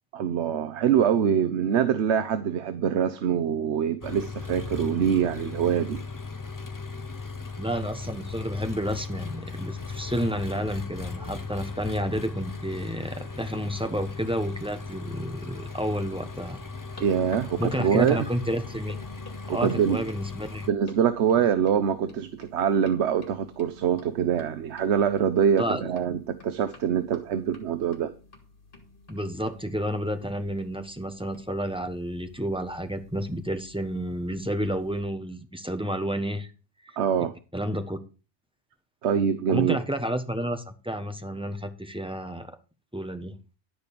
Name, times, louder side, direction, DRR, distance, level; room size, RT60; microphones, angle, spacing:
voice 1, 0.1-6.0 17.0-18.3 19.5-20.0 20.7-28.1 37.0-37.3 39.0-39.8, right 8 dB, 80° right, 1.1 m, -24 dB
Engine, 4.0-20.7, left 4 dB, 20° left, 0.6 m, -37 dB
voice 2, 7.6-16.6 17.6-19.0 19.5-20.7 25.6-25.9 29.1-36.5 37.5-38.0 39.5-42.5 42.9-43.3, equal, 5° right, 1.2 m, -30 dB
sound 1, 16.7-35.0, left 2 dB, 50° left, 2.4 m, -51 dB
12.0 x 5.3 x 6.7 m
omnidirectional pair, 1.1 m